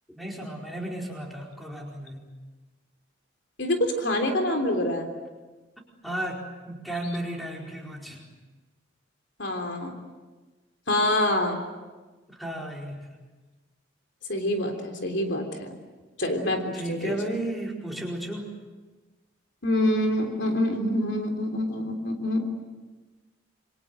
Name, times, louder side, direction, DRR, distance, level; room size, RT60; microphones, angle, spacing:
voice 1, 0.1-2.2 6.0-8.2 12.3-13.0 16.7-18.5, right 1 dB, ahead, -1 dB, 4.6 m, -34 dB
voice 2, 3.6-5.1 9.4-9.9 10.9-11.6 14.3-15.7 16.2-17.2 19.6-22.5, left 1 dB, 65° left, 4 dB, 3.5 m, -26 dB
28.0 x 24.0 x 7.9 m, 1.3 s
head